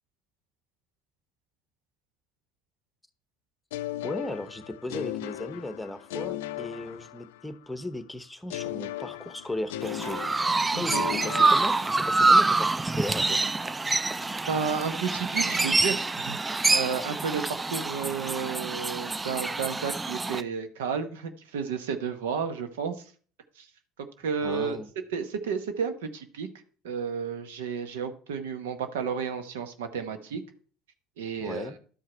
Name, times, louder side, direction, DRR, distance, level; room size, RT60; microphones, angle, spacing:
sound 1, 3.7-7.6 8.5-12.4, left 14 dB, 80° left, 0.3 m, -37 dB
voice 1, 4.0-10.2 10.8-13.4 24.4-24.9 31.4-31.8, left 1 dB, 10° left, 12 dB, 1.0 m, -36 dB
Chirp tweet, 9.8-20.4, right 3 dB, 20° right, 0.4 m, -26 dB
voice 2, 10.7-11.1 14.5-23.0 23.6-23.7 24.2-24.8 25.1-26.5 26.8-30.4 31.2-31.7, right 6 dB, 80° right, 8 dB, 0.9 m, -32 dB
11.5 x 4.7 x 4.4 m, 0.43 s
hypercardioid pair, 70°, 0 cm